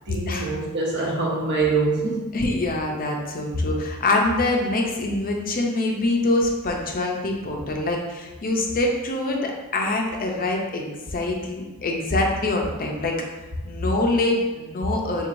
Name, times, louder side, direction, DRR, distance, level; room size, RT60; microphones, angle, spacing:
voice 1, 0.1-2.3, right 3 dB, 55° right, -2 dB, 1.0 m, -24 dB
voice 2, 2.3-13.1 13.6-15.3, left 2 dB, 40° left, 1 dB, 0.6 m, -25 dB
4.6 x 3.7 x 2.6 m, 1.1 s
head